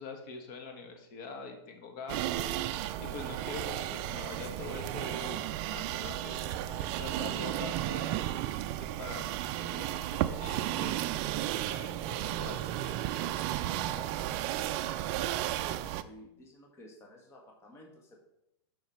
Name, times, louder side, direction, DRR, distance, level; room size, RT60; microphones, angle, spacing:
voice 1, 0.0-2.5 3.0-8.2 8.8-13.0, left 4 dB, 45° left, 4 dB, 1.5 m, -45 dB
sound 1, 2.1-16.0, right 13 dB, 35° right, 0.4 m, -34 dB
voice 2, 13.8-18.2, left 1 dB, 20° left, 0 dB, 1.4 m, -53 dB
7.7 x 5.7 x 5.6 m, 0.83 s
supercardioid pair, 155°, 14 cm